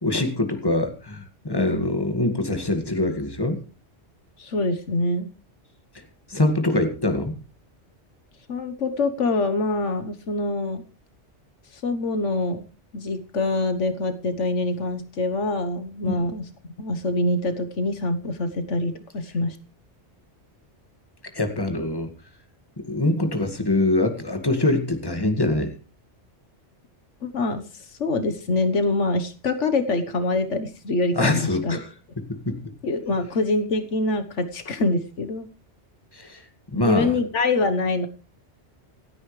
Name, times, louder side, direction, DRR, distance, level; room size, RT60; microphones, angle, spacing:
voice 1, 0.0-3.6 6.3-7.3 16.1-16.2 21.3-22.1 22.8-25.7 31.1-31.9 32.3-32.6 36.1-36.4 36.7-37.1, left 2 dB, 20° left, 6 dB, 2.0 m, -24 dB
voice 2, 4.4-5.3 8.5-10.8 11.7-12.6 12.9-16.5 16.8-19.6 27.2-31.8 32.8-35.5 36.8-38.1, left 2 dB, 80° left, 9 dB, 1.5 m, -25 dB
26.5 x 9.4 x 3.3 m, 0.33 s
omnidirectional pair, 1.2 m